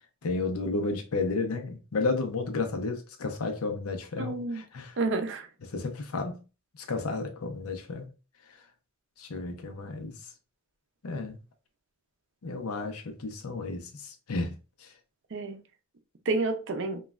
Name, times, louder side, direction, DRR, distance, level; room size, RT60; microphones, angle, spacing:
voice 1, 0.2-4.3 4.7-4.9 5.7-6.4 6.9-8.1 9.2-10.1 11.0-11.4 12.4-13.9 14.3-14.5, left 3 dB, 90° left, 0.6 m, -32 dB
voice 2, 4.2-4.6 5.0-5.5 15.3-15.6 16.3-17.0, right 3 dB, 60° right, 0.5 m, -29 dB
3.0 x 2.3 x 2.3 m
head